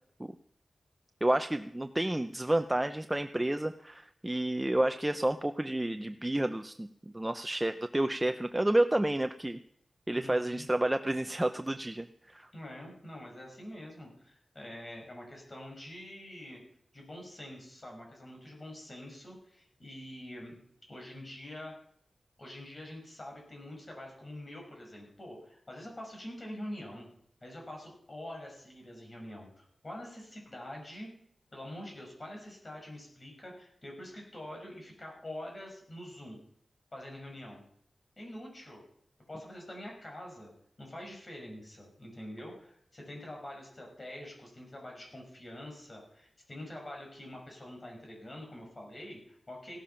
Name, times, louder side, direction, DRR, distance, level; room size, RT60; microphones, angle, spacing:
voice 1, 1.2-6.9 7.1-9.6 10.1-12.5, right 1 dB, 15° right, 8 dB, 0.6 m, -30 dB
voice 2, 10.1-10.6 12.5-16.6 16.9-20.6 20.9-21.7 22.4-27.1 27.4-31.1 31.5-36.4 36.9-37.6 38.2-38.8 39.3-40.5 40.8-49.8, left 1 dB, 35° left, 0 dB, 5.9 m, -45 dB
16.5 x 12.5 x 5.8 m, 0.70 s
wide cardioid pair, 115°, 0 cm